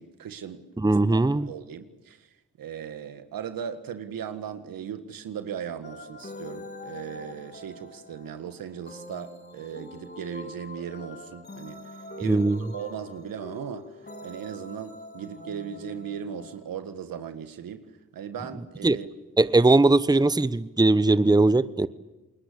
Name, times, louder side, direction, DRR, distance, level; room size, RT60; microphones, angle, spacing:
voice 1, 0.0-2.3 2.6-11.8 12.2-13.9 14.2-17.8 18.1-19.1, right 8 dB, 85° right, 1.7 m, -37 dB
voice 2, 0.8-1.5 12.2-12.6 18.8-19.0 19.4-21.9, right 2 dB, 10° right, 1.0 m, -20 dB
sound 1, 5.8-16.6, left 2 dB, 30° left, 6.8 m, -44 dB
28.5 x 21.0 x 8.5 m
supercardioid pair, 45°, 34 cm